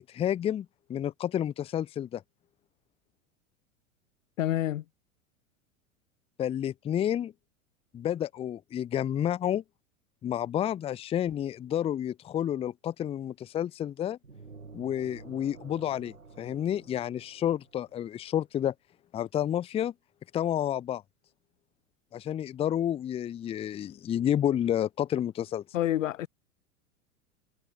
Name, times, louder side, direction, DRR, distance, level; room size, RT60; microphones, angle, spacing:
voice 1, 0.1-2.2 6.4-7.3 7.9-9.6 10.2-14.2 14.7-18.7 19.1-19.9 20.3-21.0 22.1-25.6, left 10 dB, 15° left, 0.5 m, -30 dB
voice 2, 4.4-4.8 25.7-26.3, left 13 dB, 70° left, 0.6 m, -28 dB
sound 1, 14.2-18.1, right 4 dB, 85° right, 6.2 m, -50 dB
figure-of-eight pair, 90°, 40 cm